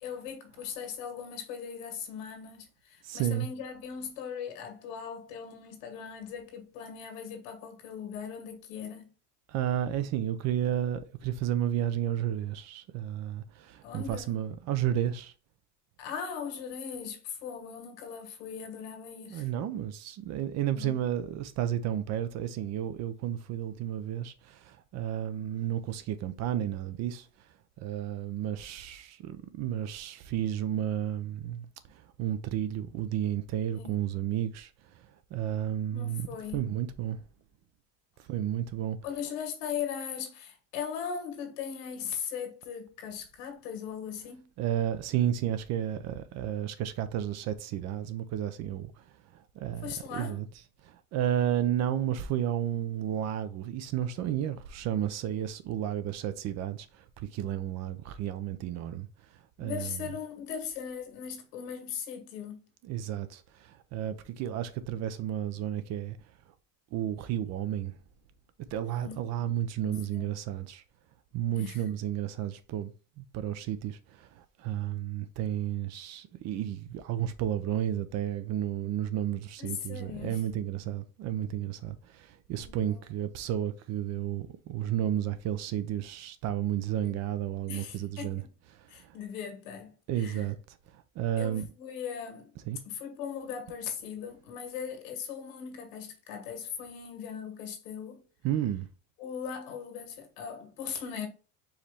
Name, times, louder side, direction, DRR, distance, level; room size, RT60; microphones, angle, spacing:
voice 1, 0.0-9.1 13.8-14.4 16.0-19.5 20.7-21.0 33.7-34.0 35.9-36.7 39.0-44.5 49.8-50.4 59.6-62.6 68.8-69.5 69.8-70.3 71.6-71.8 79.6-80.6 82.6-83.0 87.0-87.2 87.7-88.5 88.9-90.5 91.4-92.5 92.8-98.2 99.2-101.3, left 7 dB, 85° left, 1.7 m, -39 dB
voice 2, 3.0-3.5 9.5-15.3 19.3-27.5 27.8-37.2 38.2-39.0 44.6-50.5 50.8-60.1 62.8-66.2 66.9-67.9 68.7-70.8 71.3-88.4 88.7-89.2 90.1-91.7 92.7-92.8 98.4-98.9, right 11 dB, 45° right, 0.5 m, -32 dB
4.7 x 3.1 x 3.4 m
cardioid pair, 145°, 38 cm